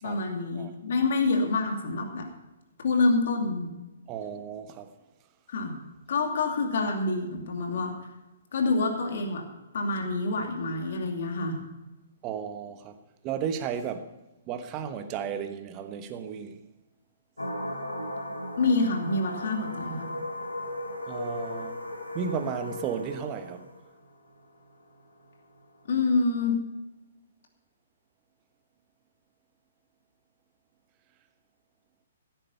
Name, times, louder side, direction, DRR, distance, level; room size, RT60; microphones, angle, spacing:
voice 1, 0.0-2.3 2.8-3.7 5.5-5.8 6.1-7.9 8.5-9.5 9.7-11.6 18.6-20.1 25.9-26.6, left 3 dB, 55° left, 2.6 m, -27 dB
voice 2, 4.1-4.9 12.2-13.0 13.2-14.1 14.5-16.6 21.1-21.8 22.1-23.7, right 7 dB, 25° right, 1.2 m, -34 dB
sound 1, 17.4-26.3, left 1 dB, 85° left, 2.6 m, -37 dB
15.5 x 9.3 x 5.5 m
figure-of-eight pair, 125°, 0 cm